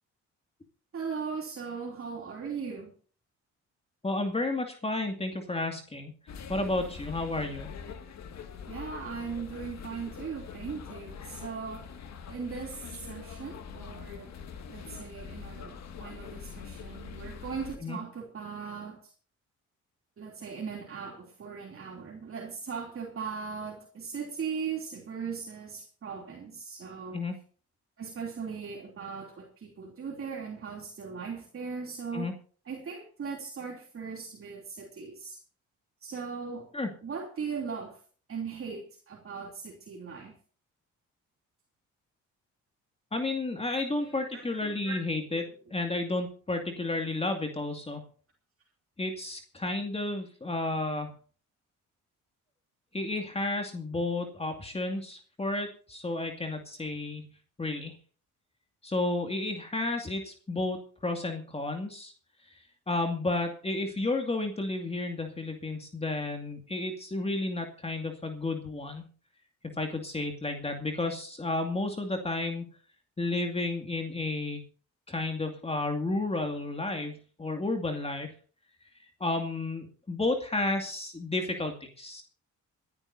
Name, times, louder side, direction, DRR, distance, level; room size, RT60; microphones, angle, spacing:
voice 1, 0.9-2.9 8.7-11.9 12.3-14.3 14.7-19.0 20.2-27.2 28.0-32.3 32.6-35.4 36.0-36.7 37.0-38.0 38.3-40.3 43.9-45.4, right 6 dB, 45° right, -1 dB, 3.1 m, -39 dB
voice 2, 4.0-6.1 6.5-7.7 17.8-18.0 27.1-27.3 32.1-32.3 36.7-36.9 43.1-48.0 49.0-51.1 52.9-57.3 57.6-57.9 58.8-62.1 62.9-69.0 69.8-72.6 73.2-74.6 75.1-78.3 79.2-82.2, left 2 dB, 20° left, 4 dB, 2.3 m, -32 dB
sound 1, 6.3-17.8, left 6 dB, 60° left, 2.1 m, -43 dB
26.0 x 11.0 x 2.7 m, 0.41 s
cardioid pair, 90°, 30 cm